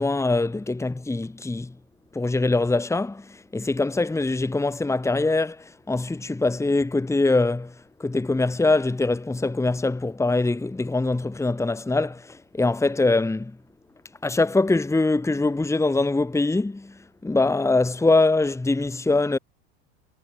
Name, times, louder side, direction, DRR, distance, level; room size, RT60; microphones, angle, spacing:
voice 1, 0.0-1.8 2.1-13.6 14.2-19.4, left 2 dB, 10° left, 1.7 m, -23 dB
hypercardioid pair, 85°, 33 cm